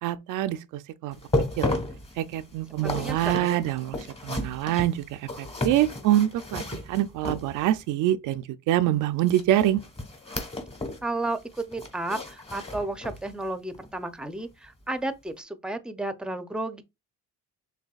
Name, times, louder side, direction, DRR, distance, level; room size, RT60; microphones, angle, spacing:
voice 1, 0.0-1.2 1.6-1.7 2.2-4.0 4.2-9.8, right 13 dB, 90° right, 0.5 m, -25 dB
sound 1, 1.1-7.9 9.2-11.1 11.3-13.3 13.7-13.9 14.4-14.5, left 2 dB, 20° left, 1.3 m, -33 dB
voice 2, 2.8-3.7 11.0-16.8, right 2 dB, 5° right, 0.6 m, -33 dB
6.4 x 2.7 x 2.4 m
cardioid pair, 90°, 30 cm